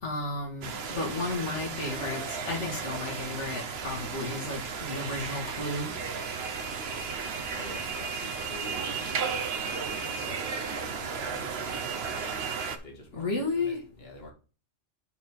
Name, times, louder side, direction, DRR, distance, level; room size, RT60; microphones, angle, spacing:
voice 1, 0.0-5.9 13.1-13.8, left 2 dB, 90° left, 2.6 m, -33 dB
sound 1, 0.6-12.8, right 5 dB, 60° right, 1.1 m, -34 dB
voice 2, 7.5-9.2 9.5-14.3, left 2 dB, 60° left, 2.3 m, -47 dB
9.2 x 3.9 x 4.6 m
omnidirectional pair, 1.2 m